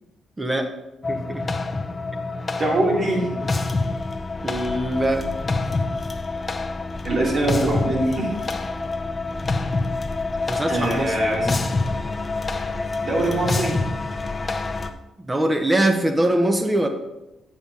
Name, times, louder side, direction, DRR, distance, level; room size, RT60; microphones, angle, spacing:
voice 1, 0.4-0.7 1.1-1.5 4.4-5.3 10.5-11.6 15.2-16.9, right 1 dB, 20° right, 6 dB, 1.1 m, -23 dB
sound 1, 1.0-14.9, left 3 dB, 30° left, 0.7 m, -26 dB
voice 2, 2.6-3.3 7.0-8.3 10.7-11.5 13.0-13.8, right 1 dB, 50° right, -2 dB, 2.8 m, -23 dB
8.2 x 7.0 x 4.1 m, 0.95 s
cardioid pair, 95°, 0 cm